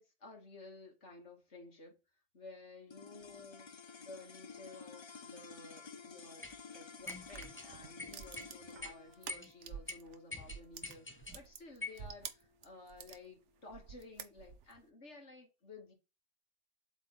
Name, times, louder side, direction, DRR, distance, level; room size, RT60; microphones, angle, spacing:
voice 1, 0.0-2.0 2.3-3.7 4.0-15.9, left 3 dB, 75° left, 2.7 m, -54 dB
sound 1, 2.9-13.3, left 5 dB, 35° left, 0.4 m, -54 dB
sound 2, 6.4-6.6 7.1-7.7 8.0-8.5 8.8-8.9 9.3-9.5 9.9-10.0 10.3-11.4 11.8-12.0, left 3 dB, 10° left, 0.8 m, -44 dB
sound 3, 7.0-10.2 10.4-13.2 13.7-14.8, right 7 dB, 90° right, 1.2 m, -49 dB
7.8 x 3.7 x 4.2 m
omnidirectional pair, 1.2 m